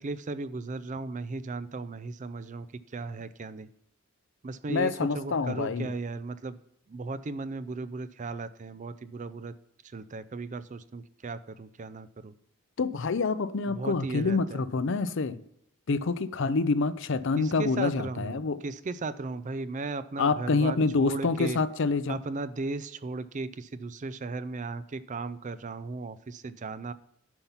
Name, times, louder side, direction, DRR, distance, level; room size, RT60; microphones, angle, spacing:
voice 1, 0.0-3.7 4.4-6.6 6.9-9.5 9.8-12.3 13.7-14.6 17.4-21.6 22.1-26.9, right 3 dB, 35° right, 0.4 m, -36 dB
voice 2, 4.7-5.9 12.8-15.4 15.9-18.6 20.2-22.2, left 4 dB, 60° left, 0.5 m, -27 dB
10.5 x 5.8 x 5.6 m
head